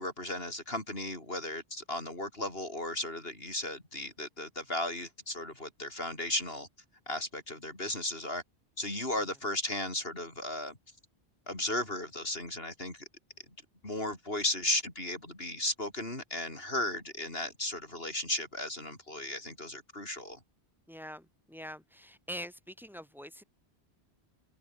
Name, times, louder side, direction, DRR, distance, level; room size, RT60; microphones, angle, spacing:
voice 1, 0.0-6.7 7.1-8.4 8.8-10.8 11.5-13.1 13.8-20.4, left 1 dB, 65° left, 5.9 m, -35 dB
voice 2, 20.9-23.4, equal, ahead, 7.8 m, -44 dB
omnidirectional pair, 1.1 m